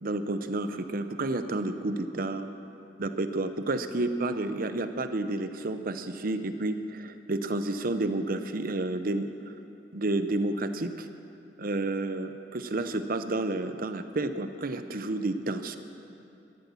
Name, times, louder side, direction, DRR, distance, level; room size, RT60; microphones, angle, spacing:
voice 1, 0.0-2.5 3.0-9.3 9.9-11.1 11.6-15.8, right 2 dB, 55° right, 10 dB, 0.8 m, -30 dB
13.5 x 12.5 x 7.0 m, 2.7 s
head